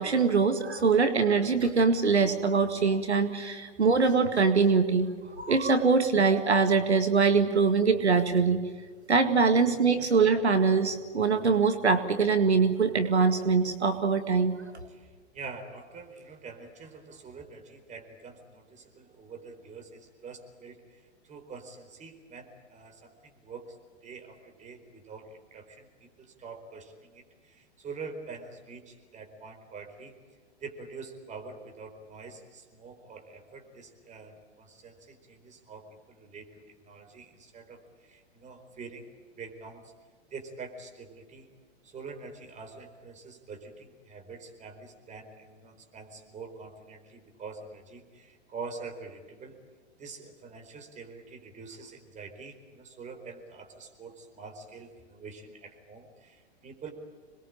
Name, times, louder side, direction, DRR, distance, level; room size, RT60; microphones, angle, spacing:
voice 1, 0.0-8.6 9.1-14.6, right 5 dB, 90° right, 9 dB, 2.0 m, -23 dB
voice 2, 14.9-23.8 24.0-30.1 30.6-36.5 36.8-39.1 39.3-39.9 40.3-41.5 41.8-49.5 50.0-56.9, right 4 dB, 20° right, 5 dB, 4.5 m, -45 dB
26.5 x 21.5 x 8.7 m, 1.5 s
hypercardioid pair, 110°, 32 cm